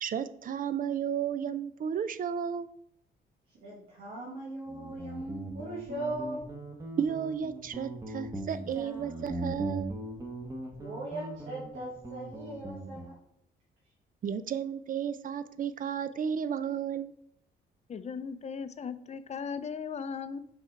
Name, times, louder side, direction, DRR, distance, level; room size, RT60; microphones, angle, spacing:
voice 1, 0.0-2.7 7.0-9.9 14.2-17.1, right 8 dB, 45° right, 13 dB, 0.4 m, -33 dB
voice 2, 3.6-6.5 10.7-13.1, right 1 dB, 90° right, -4 dB, 1.3 m, -39 dB
Guitar, 4.7-13.2, right 1 dB, 15° right, 1.2 m, -40 dB
voice 3, 17.9-20.4, left 6 dB, 35° left, 13 dB, 0.5 m, -37 dB
5.8 x 3.7 x 4.5 m, 0.74 s
cardioid pair, 90°, 20 cm